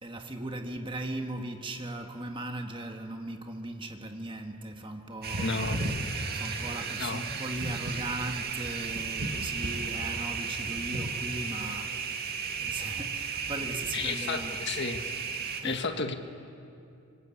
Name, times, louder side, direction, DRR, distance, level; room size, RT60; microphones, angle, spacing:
voice 1, 0.0-5.6 6.3-14.7 15.5-15.8, right 2 dB, 20° right, 1.7 m, -38 dB
sound 1, 5.2-15.6, right 4 dB, 45° right, 2.1 m, -34 dB
voice 2, 5.4-5.8 7.0-7.4 13.9-15.1 15.6-16.1, left 4 dB, 50° left, 1.6 m, -32 dB
26.5 x 25.5 x 8.6 m
head